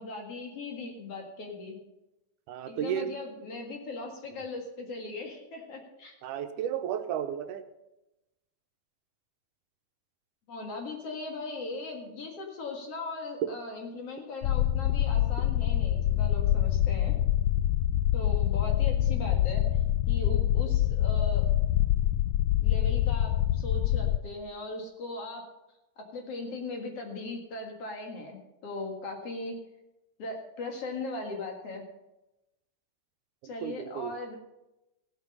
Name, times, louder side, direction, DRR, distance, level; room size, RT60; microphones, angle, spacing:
voice 1, 0.0-1.8 2.7-6.1 10.5-17.2 18.1-19.6 20.1-21.5 22.6-25.4 26.0-29.6 30.2-31.8 33.4-34.4, left 2 dB, 55° left, 2 dB, 2.6 m, -39 dB
voice 2, 2.5-3.1 6.2-7.6 33.6-34.1, right 9 dB, 85° right, 9 dB, 2.3 m, -33 dB
sound 1, 14.4-24.2, left 12 dB, 80° left, 1.5 m, -25 dB
15.5 x 8.3 x 5.4 m, 0.96 s
omnidirectional pair, 3.5 m